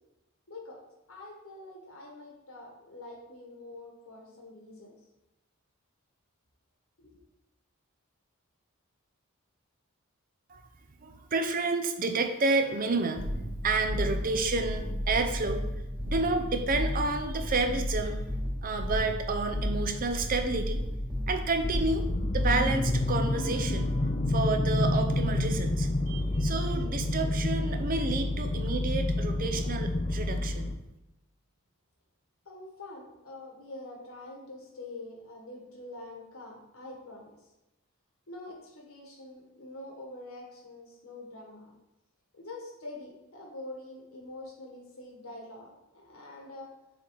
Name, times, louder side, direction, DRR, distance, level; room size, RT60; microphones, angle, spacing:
voice 1, 0.5-0.8 1.1-4.9 7.0-7.2 32.4-37.3 38.3-41.7 42.4-46.7, left 2 dB, 70° left, 0 dB, 1.7 m, -45 dB
voice 2, 11.0-15.6 16.0-18.2 18.6-20.8 21.3-22.1 22.3-30.7, right 3 dB, 40° right, 6 dB, 0.6 m, -30 dB
sound 1, 13.1-22.8, left 1 dB, 5° right, 1.1 m, -33 dB
sound 2, 21.6-30.7, left 1 dB, 25° left, 0.5 m, -29 dB
6.8 x 3.9 x 4.0 m, 0.94 s
head